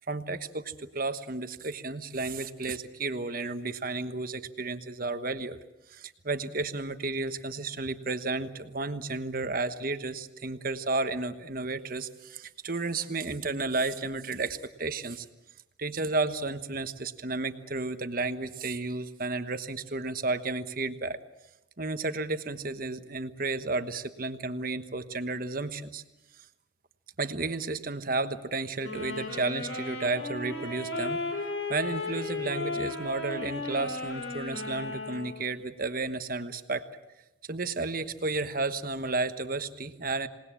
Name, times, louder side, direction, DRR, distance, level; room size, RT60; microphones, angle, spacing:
voice 1, 0.0-5.6 5.9-15.2 15.8-21.2 21.8-26.0 27.2-31.2 31.7-36.8 37.5-40.3, right 3 dB, 45° right, 9 dB, 1.2 m, -32 dB
sound 1, 28.8-35.4, left 2 dB, 75° left, 6.7 m, -35 dB
27.0 x 19.0 x 7.5 m, 0.96 s
head